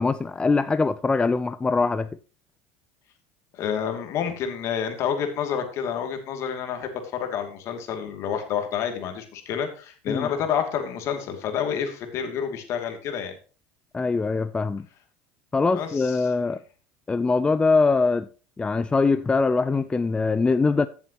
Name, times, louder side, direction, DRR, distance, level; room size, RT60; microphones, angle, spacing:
voice 1, 0.0-2.1 10.1-10.3 13.9-14.9 15.5-16.6 17.1-18.3 18.6-20.9, left 4 dB, 20° left, 0.5 m, -22 dB
voice 2, 3.5-13.3 15.7-16.2, left 8 dB, 55° left, 2.6 m, -29 dB
14.5 x 7.2 x 3.0 m
hypercardioid pair, 90°, 6 cm